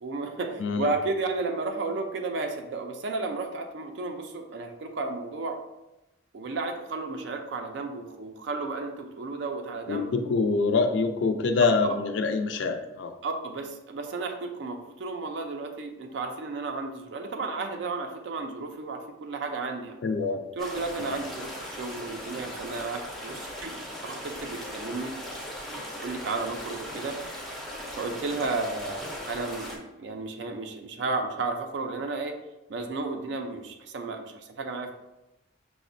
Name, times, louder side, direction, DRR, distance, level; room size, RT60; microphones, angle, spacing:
voice 1, 0.0-5.6 6.3-10.1 11.6-12.0 13.2-20.0 20.6-25.1 26.0-27.5 28.0-32.3 32.7-34.9, right 3 dB, 65° right, 4 dB, 0.4 m, -33 dB
voice 2, 9.9-13.1 20.0-20.4, left 4 dB, 70° left, 6 dB, 0.4 m, -25 dB
sound 1, 20.6-29.8, equal, ahead, 0.4 m, -38 dB
5.8 x 2.0 x 2.5 m, 0.96 s
head